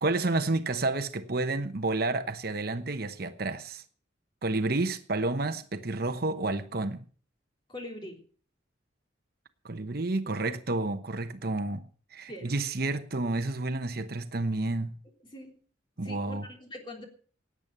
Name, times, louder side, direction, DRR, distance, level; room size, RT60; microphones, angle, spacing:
voice 1, 0.0-3.8 4.4-7.0 9.6-11.8 12.1-14.9 16.0-16.5, right 2 dB, 50° right, 0.9 m, -30 dB
voice 2, 7.7-8.2 12.3-12.6 15.2-15.6 16.0-17.0, left 1 dB, 25° left, 3.5 m, -42 dB
17.5 x 8.9 x 6.7 m
head